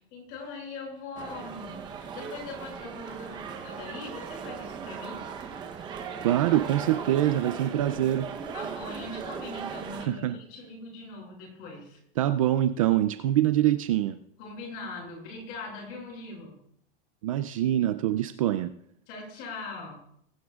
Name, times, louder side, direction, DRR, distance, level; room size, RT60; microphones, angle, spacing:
voice 1, 0.0-1.8 2.1-5.2 5.7-6.0 8.5-12.0 14.4-16.5 19.1-20.0, left 3 dB, 35° left, -1 dB, 6.2 m, -41 dB
sound 1, 1.2-10.1, right 6 dB, 15° right, 0.8 m, -38 dB
voice 2, 6.2-8.3 10.0-10.4 12.2-14.2 17.2-18.7, right 12 dB, 35° right, 11 dB, 0.4 m, -24 dB
22.0 x 11.0 x 2.4 m, 0.70 s
supercardioid pair, 175°, 29 cm